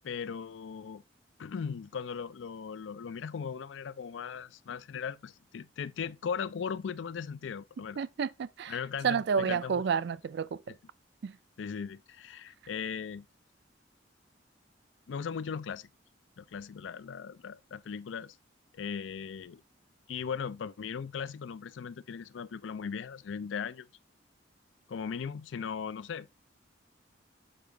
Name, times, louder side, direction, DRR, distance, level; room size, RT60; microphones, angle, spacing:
voice 1, 0.0-1.0 1.4-8.0 8.7-9.8 11.6-13.3 15.1-15.9 16.4-18.4 18.7-19.6 20.1-23.9 24.9-26.3, left 6 dB, 85° left, 0.4 m, -38 dB
voice 2, 8.0-8.8 9.0-10.8 11.2-11.4, right 6 dB, 65° right, 0.4 m, -30 dB
6.7 x 4.7 x 3.3 m
head